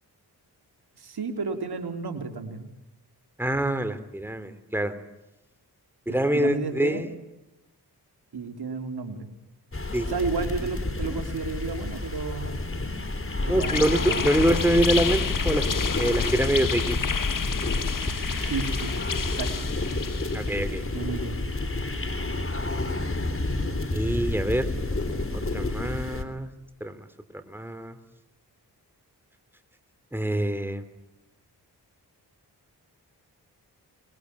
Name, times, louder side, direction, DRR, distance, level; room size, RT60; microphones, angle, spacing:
voice 1, 1.0-2.7 6.1-7.1 8.3-9.3 10.1-12.6 13.4-14.6 18.4-18.9 19.3-19.5 20.9-21.4, right 4 dB, 70° right, 5 dB, 3.6 m, -32 dB
voice 2, 3.4-4.9 6.1-7.1 9.9-10.1 11.1-11.2 13.5-15.6 16.0-17.0 20.3-20.8 23.9-24.7 25.3-26.5 26.8-27.0 27.3-28.0 30.1-30.8, right 1 dB, 5° right, 10 dB, 3.3 m, -25 dB
sound 1, 9.7-26.2, left 2 dB, 30° left, 3.5 m, -30 dB
sound 2, 13.6-20.6, left 5 dB, 50° left, 1.5 m, -29 dB
25.0 x 22.0 x 9.8 m, 0.97 s
cardioid pair, 45°, 40 cm